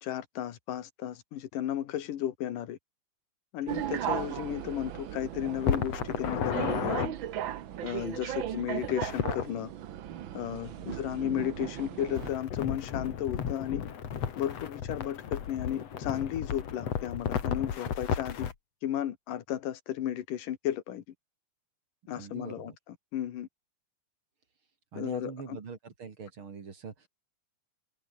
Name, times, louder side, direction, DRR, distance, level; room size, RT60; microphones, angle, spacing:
voice 1, 0.0-2.8 3.5-7.1 7.8-9.7 10.3-13.9 14.4-18.5 18.8-21.0 22.1-22.7 23.1-23.5 25.0-25.3, left 11 dB, 80° left, 3.2 m, -34 dB
sound 1, 3.7-12.3, right 11 dB, 85° right, 1.1 m, -37 dB
sound 2, 5.6-7.1 8.8-9.5 12.1-18.5, left 8 dB, 55° left, 3.0 m, -33 dB
voice 2, 22.2-22.8 24.9-27.1, right 5 dB, 40° right, 3.0 m, -43 dB
omnidirectional pair, 3.7 m